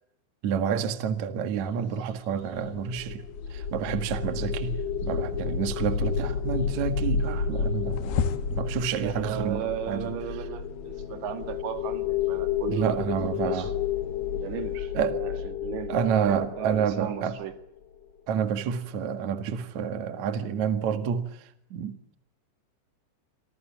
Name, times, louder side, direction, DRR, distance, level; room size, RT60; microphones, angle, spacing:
voice 1, 0.4-3.2 3.5-8.1 8.5-10.1 12.7-13.7 14.9-15.2 15.9-17.4 18.3-22.0, right 7 dB, 50° right, 2.5 m, -29 dB
sound 1, 1.5-8.6, left 7 dB, 65° left, 3.3 m, -40 dB
sound 2, 2.6-17.8, left 6 dB, 40° left, 2.8 m, -31 dB
sound 3, 8.2-14.8, left 10 dB, 85° left, 4.4 m, -49 dB
voice 2, 9.0-13.7 14.3-17.6, right 10 dB, 75° right, 4.0 m, -35 dB
28.0 x 26.0 x 7.4 m
omnidirectional pair, 5.2 m